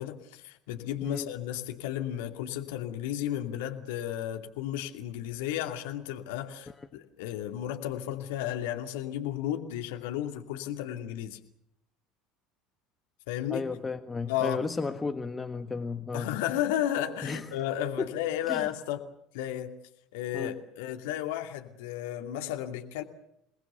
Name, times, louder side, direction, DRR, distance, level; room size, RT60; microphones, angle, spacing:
voice 1, 0.0-11.4 13.3-13.6 14.3-14.7 16.1-19.0 19.3-19.8 20.1-23.0, left 11 dB, 65° left, 5 dB, 2.5 m, -33 dB
voice 2, 13.5-16.3 17.2-17.5 18.0-18.1 18.5-18.7 20.3-20.6, left 4 dB, 20° left, 8 dB, 1.5 m, -33 dB
29.0 x 20.0 x 7.0 m, 0.75 s
figure-of-eight pair, 65°, 0 cm